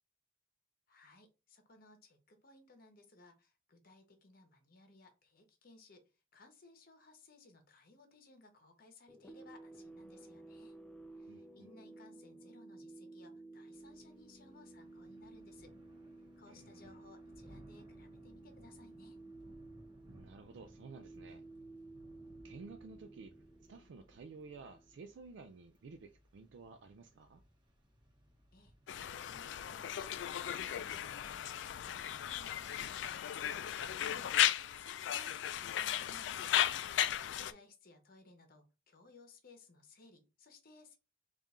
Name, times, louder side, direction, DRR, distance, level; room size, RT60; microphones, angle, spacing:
voice 1, 0.9-6.0 6.3-10.8 11.2-15.7 16.4-19.2 28.5-41.0, left 3 dB, 55° left, 0.9 m, -61 dB
sound 1, 9.1-25.4, right 2 dB, 5° left, 0.4 m, -54 dB
voice 2, 11.3-11.7 16.5-16.9 20.1-21.4 22.4-23.3 23.6-27.4 37.1-37.5, right 4 dB, 85° right, 0.4 m, -53 dB
Thunder / Rain, 13.7-32.1, equal, 25° right, 0.9 m, -63 dB
Conversation, 28.9-37.5, left 11 dB, 80° left, 0.3 m, -35 dB
3.6 x 2.5 x 4.1 m
head